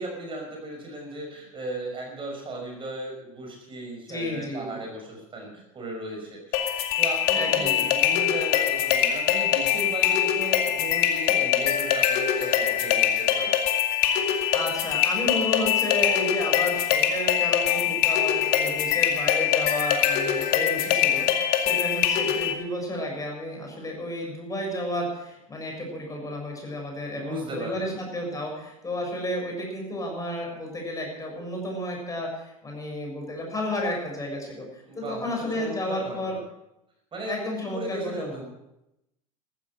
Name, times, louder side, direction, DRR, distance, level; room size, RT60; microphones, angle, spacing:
voice 1, 0.0-13.5 27.1-28.0 34.9-36.4 37.1-38.4, right 2 dB, 30° right, 1 dB, 5.7 m, -36 dB
voice 2, 4.1-4.7 7.3-7.9 14.5-36.4 37.3-38.4, left 1 dB, 20° left, 0 dB, 7.0 m, -32 dB
sound 1, 6.5-22.5, left 10 dB, 55° left, 2.3 m, -23 dB
14.5 x 13.5 x 6.4 m, 0.88 s
hypercardioid pair, 85°, 18 cm